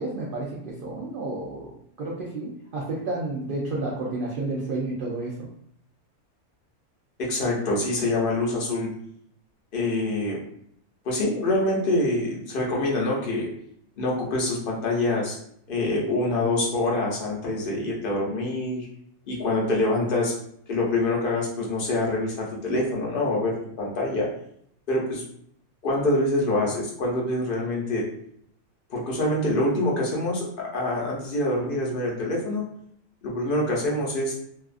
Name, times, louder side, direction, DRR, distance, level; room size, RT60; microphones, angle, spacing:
voice 1, 0.0-5.5, right 2 dB, 85° right, -4 dB, 0.4 m, -31 dB
voice 2, 7.2-8.9 9.7-10.4 11.0-13.5 14.0-15.4 15.7-18.9 19.3-20.3 20.7-24.3 24.9-25.2 25.8-28.0 28.9-30.5 30.7-32.6 33.2-34.3, left 2 dB, 50° left, -3 dB, 0.7 m, -25 dB
2.6 x 2.3 x 2.4 m, 0.68 s
omnidirectional pair, 1.5 m